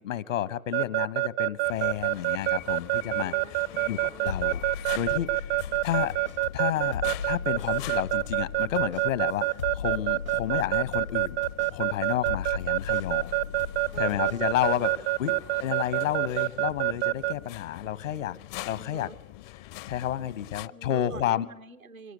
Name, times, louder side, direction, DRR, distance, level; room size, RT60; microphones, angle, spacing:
voice 1, 0.0-3.3 3.9-4.6 4.9-5.5 5.8-6.1 6.5-11.4 11.7-13.3 13.9-14.9 15.2-15.3 15.6-18.4 18.6-19.1 19.8-21.4, left 11 dB, 65° left, 18 dB, 1.3 m, -30 dB
Keyboard (musical) / Alarm, 0.7-17.3, right 20 dB, 50° right, 0.8 m, -26 dB
sound 1, 1.6-20.7, left 17 dB, 40° left, 0.7 m, -45 dB
voice 2, 3.0-4.7 13.9-14.5 14.7-16.0 18.8-19.2 20.7-22.1, right 3 dB, 85° right, 8 dB, 1.4 m, -47 dB
sound 2, 4.3-14.9, left 7 dB, 85° left, 1.9 m, -38 dB
24.5 x 18.5 x 8.1 m, 0.86 s
figure-of-eight pair, 85°, 41 cm